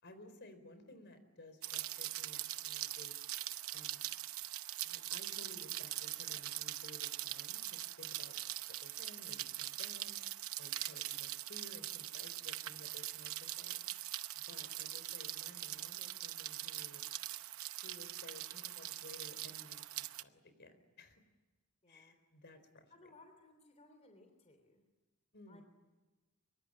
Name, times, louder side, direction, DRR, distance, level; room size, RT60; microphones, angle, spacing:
voice 1, 0.0-3.2 3.7-4.1 4.8-8.4 8.8-10.2 10.6-13.8 14.3-17.0 17.7-21.2 21.9-22.9 25.3-25.6, left 2 dB, 55° left, 10 dB, 4.3 m, -57 dB
Rain, 1.6-20.2, right 14 dB, 70° right, 0.8 m, -42 dB
voice 2, 14.5-15.0 21.8-22.2 22.9-24.8 25.5-25.6, left 2 dB, 30° left, 5 dB, 3.2 m, -62 dB
25.0 x 24.0 x 10.0 m, 1.2 s
head